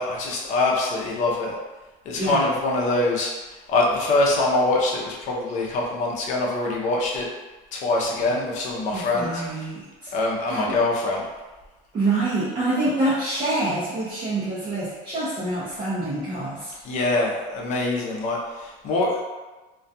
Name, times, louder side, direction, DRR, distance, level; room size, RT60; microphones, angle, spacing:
voice 1, 0.0-1.5 2.1-3.3 3.7-7.3 7.7-9.4 10.1-11.3 16.8-19.2, left 2 dB, 45° left, -2 dB, 0.6 m, -24 dB
voice 2, 8.9-10.1 10.5-10.7 11.9-16.7, right 2 dB, 30° right, -10 dB, 0.6 m, -26 dB
2.3 x 2.2 x 2.6 m, 1.2 s
cardioid pair, 150°, 17 cm